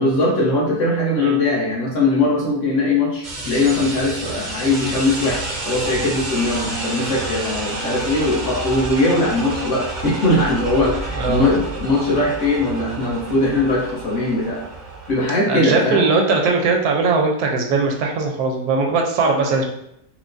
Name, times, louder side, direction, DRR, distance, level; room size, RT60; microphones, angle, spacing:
voice 1, 0.0-14.6 15.1-16.0, left 2 dB, 60° left, -3 dB, 1.0 m, -20 dB
sound 1, 3.2-15.2, right 2 dB, 55° right, 0.5 m, -29 dB
voice 2, 11.1-11.4 15.5-19.6, right 3 dB, 80° right, 2 dB, 1.1 m, -19 dB
4.4 x 2.0 x 2.5 m, 0.75 s
omnidirectional pair, 1.7 m